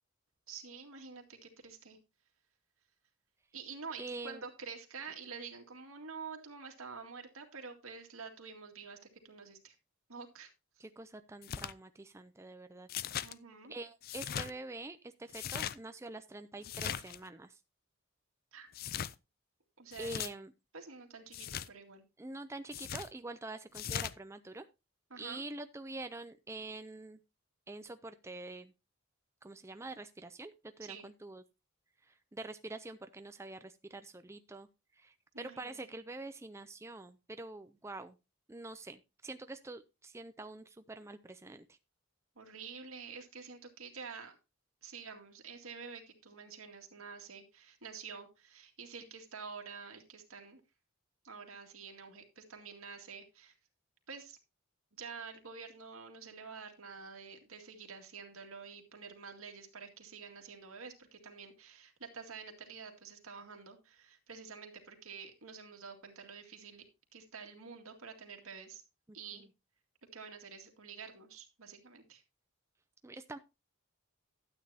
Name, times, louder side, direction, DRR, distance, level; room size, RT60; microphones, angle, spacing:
voice 1, 0.5-2.0 3.5-9.7 10.1-10.5 13.2-13.7 18.5-18.7 19.8-20.3 20.7-22.0 25.1-25.4 30.8-31.1 35.3-35.7 42.4-44.4 44.8-50.6 51.2-53.5 54.1-54.4 54.9-66.9 67.1-68.8 69.1-69.4 70.1-72.2, right 5 dB, 80° right, 4 dB, 2.1 m, -48 dB
voice 2, 4.0-4.4 10.8-12.9 13.7-17.6 20.0-20.5 22.2-24.7 25.2-27.2 27.7-28.7 29.4-31.4 32.0-34.7 34.9-38.2 38.5-41.8 69.3-69.5 73.0-73.4, right 2 dB, 15° right, 9 dB, 0.4 m, -46 dB
page turning, 11.4-11.7 12.9-13.3 14.0-14.5 15.3-15.8 16.6-17.2 18.7-19.1 19.9-20.3 21.3-21.7 22.7-23.1 23.7-24.1, left 9 dB, 45° left, 0.4 m, -39 dB
12.5 x 8.8 x 2.8 m, 0.25 s
head